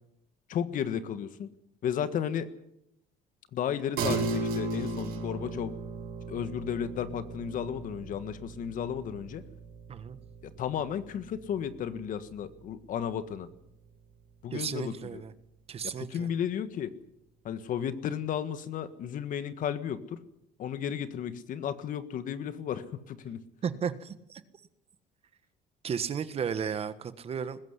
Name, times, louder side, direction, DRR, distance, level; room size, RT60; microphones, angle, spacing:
voice 1, 0.5-1.5 1.8-2.5 3.5-5.7 6.3-9.4 10.4-13.5 14.4-15.2 16.0-16.9 17.4-20.2 20.6-23.4, left 8 dB, 55° left, 12 dB, 1.6 m, -33 dB
sound 1, 4.0-13.7, right 3 dB, 65° right, 5.7 m, -37 dB
voice 2, 14.5-15.3 15.7-16.3 23.6-24.4 25.8-27.6, right 7 dB, 40° right, 13 dB, 1.4 m, -34 dB
20.5 x 16.0 x 9.8 m, 0.80 s
cardioid pair, 130°, 16 cm